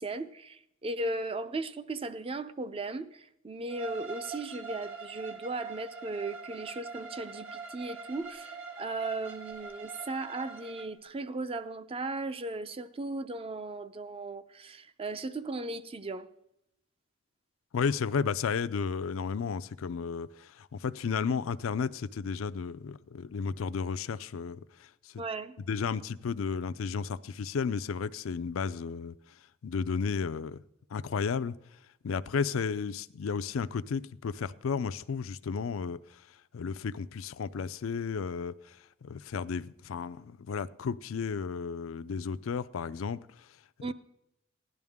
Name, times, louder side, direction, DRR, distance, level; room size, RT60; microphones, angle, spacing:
voice 1, 0.0-16.3 25.2-25.6 43.8-43.9, right 2 dB, 30° right, 0.5 m, -37 dB
Bowed string instrument, 3.7-10.9, right 4 dB, 70° right, 1.7 m, -43 dB
voice 2, 17.7-25.2 25.7-29.1 29.6-30.6 30.9-31.5 32.0-36.2 36.5-43.5, left 5 dB, 70° left, 0.4 m, -33 dB
16.5 x 11.0 x 3.6 m
head